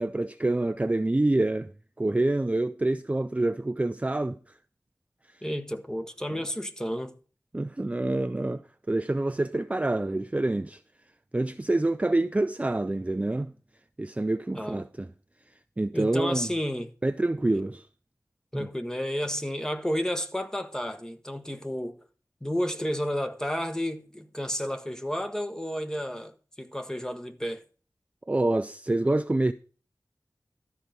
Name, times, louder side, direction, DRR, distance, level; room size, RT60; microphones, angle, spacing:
voice 1, 0.0-1.7 2.0-4.4 7.5-8.6 8.9-10.8 11.3-13.5 14.0-15.1 15.8-16.5 17.0-17.9 18.5-18.7 28.3-29.5, right 2 dB, 20° right, 0.4 m, -26 dB
voice 2, 5.4-7.1 14.5-14.9 15.9-16.9 18.5-22.0 22.4-27.6, equal, 10° left, 1.1 m, -31 dB
12.5 x 4.5 x 6.7 m
wide cardioid pair, 60°, 6 cm